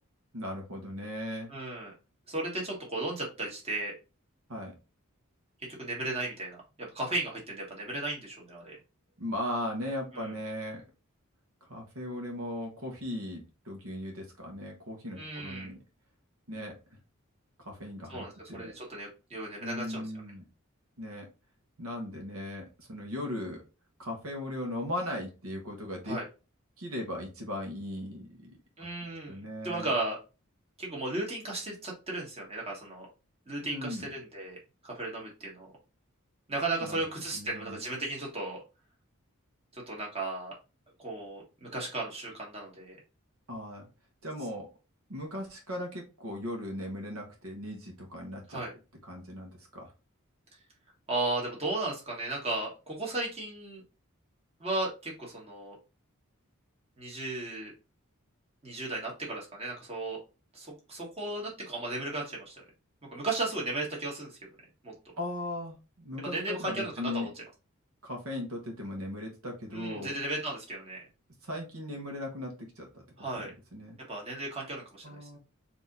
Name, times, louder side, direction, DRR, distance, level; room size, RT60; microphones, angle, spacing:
voice 1, 0.3-1.5 4.5-4.7 9.2-10.8 11.7-15.8 16.5-17.0 17.6-18.7 19.6-20.4 21.0-21.3 21.8-23.6 24.0-26.2 26.8-28.6 29.2-29.9 33.6-34.1 36.8-37.0 37.3-37.8 43.5-43.9 44.2-44.7 45.1-48.6 49.0-49.9 65.2-67.3 68.0-70.1 71.4-73.5 73.7-74.0 75.0-75.4, left 1 dB, 75° right, 1 dB, 1.3 m, -38 dB
voice 2, 1.5-1.9 2.3-3.9 5.8-8.8 10.1-10.3 15.1-15.7 18.1-20.1 26.1-26.2 28.8-29.4 29.6-30.2 30.8-33.1 33.5-34.6 34.8-35.7 36.5-38.6 39.7-40.5 41.0-43.0 48.5-48.7 51.1-53.8 54.6-55.8 57.0-57.7 58.6-60.2 60.5-62.6 63.1-64.5 64.8-64.9 66.2-67.3 69.7-71.0 73.2-73.5 74.1-75.3, right 2 dB, 30° right, -2 dB, 1.8 m, -35 dB
4.6 x 2.9 x 3.9 m, 0.30 s
head